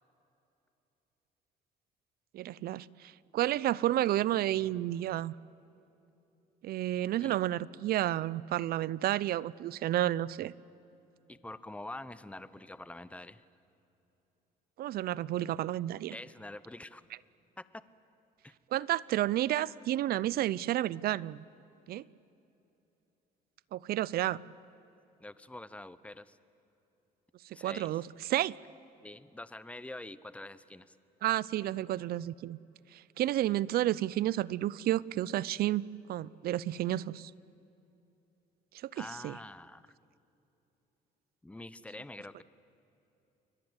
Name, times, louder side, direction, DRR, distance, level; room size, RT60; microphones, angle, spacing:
voice 1, 2.3-5.3 6.6-10.5 14.8-16.1 18.7-21.4 21.9-22.0 23.7-24.4 27.4-28.6 31.2-32.6 32.9-35.8 36.1-37.3 38.8-39.4, right 13 dB, 65° right, 22 dB, 0.6 m, -31 dB
voice 2, 11.3-13.4 16.1-17.0 17.6-17.7 18.4-18.5 25.2-26.4 27.5-27.9 29.0-30.9 38.9-39.9 41.4-42.4, left 2 dB, 10° left, 15 dB, 0.9 m, -45 dB
29.0 x 22.0 x 8.2 m, 3.0 s
cardioid pair, 110°, 17 cm